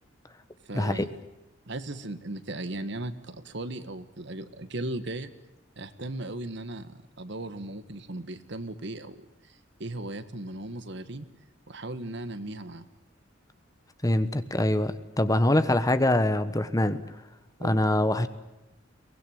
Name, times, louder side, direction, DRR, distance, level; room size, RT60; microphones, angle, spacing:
voice 1, 0.7-1.1 1.7-5.3 5.8-9.3 9.8-11.2 11.7-12.8 17.6-17.8, right 1 dB, 65° right, 11 dB, 1.7 m, -37 dB
voice 2, 14.0-17.0 17.6-18.3, left 1 dB, 20° left, 12 dB, 1.3 m, -24 dB
23.5 x 19.0 x 9.4 m, 0.99 s
head